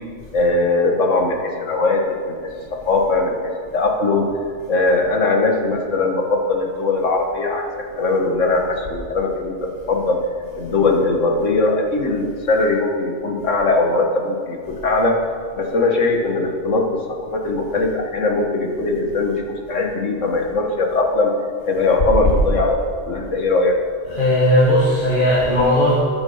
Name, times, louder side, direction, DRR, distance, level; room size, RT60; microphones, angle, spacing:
voice 1, 0.3-2.4 2.7-4.3 4.7-10.2 10.6-15.2 15.6-21.3 21.6-23.8, left 3 dB, 85° left, 2 dB, 1.8 m, -20 dB
voice 2, 24.1-26.0, left 1 dB, 45° left, -6 dB, 2.0 m, -16 dB
14.0 x 9.1 x 5.6 m, 2.1 s
omnidirectional pair, 1.3 m